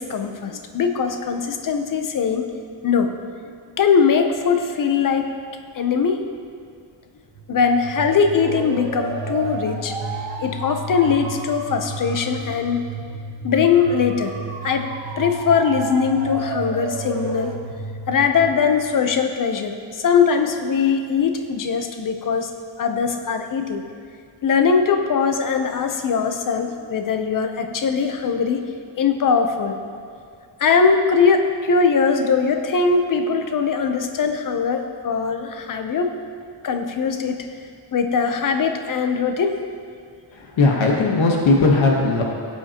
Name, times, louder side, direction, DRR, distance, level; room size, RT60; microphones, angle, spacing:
voice 1, 0.0-2.5 2.8-3.1 3.8-5.3 5.7-6.2 7.5-10.0 10.4-12.8 13.4-14.3 14.6-14.9 15.2-17.5 18.1-22.5 22.8-23.8 24.4-28.7 29.0-29.8 30.6-36.1 36.6-37.4 37.9-39.6, left 6 dB, 45° left, 6 dB, 0.8 m, -20 dB
sound 1, 7.3-19.2, right 3 dB, 70° right, 1.2 m, -31 dB
voice 2, 40.3-42.2, left 3 dB, 80° left, 0 dB, 1.3 m, -18 dB
17.5 x 8.3 x 2.9 m, 2.2 s
wide cardioid pair, 180°, 46 cm